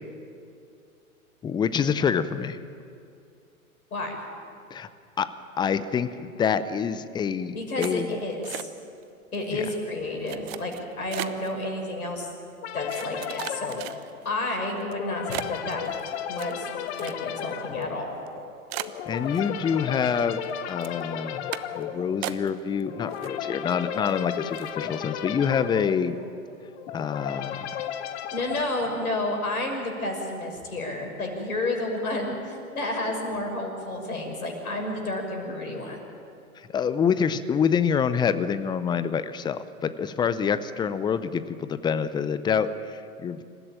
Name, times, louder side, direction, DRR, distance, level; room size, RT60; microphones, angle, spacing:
voice 1, 1.4-2.6 4.7-4.9 5.2-5.3 5.6-8.2 9.5-9.7 19.1-26.2 26.9-27.7 36.7-43.4, left 7 dB, 10° left, 14 dB, 0.6 m, -26 dB
voice 2, 7.5-8.7 9.3-12.3 12.7-15.9 16.3-16.7 17.0-18.1 28.3-36.0, left 2 dB, 75° left, 2 dB, 6.2 m, -31 dB
sound 1, 7.8-9.0 9.3-9.7 10.3-11.5 12.2-12.3 12.9-14.3 14.8-14.9 15.3-17.5 17.8-17.9 18.3-18.4 18.7-19.8 20.1-20.5 20.8-21.0 21.5-21.8 22.2-22.8 23.1-23.7 24.1-24.2 24.5-24.8, right 15 dB, 45° right, 1.0 m, -37 dB
Bark, 9.7-10.5 11.2-11.9 13.1-13.5 15.1-15.3 18.1-19.0 19.7-20.8 21.6-22.9 25.6-26.3, right 3 dB, 20° right, 5.2 m, -49 dB
sound 2, 12.6-29.8, left 10 dB, 50° left, 1.5 m, -35 dB
27.0 x 15.0 x 8.9 m, 2.5 s
figure-of-eight pair, 110°, 44 cm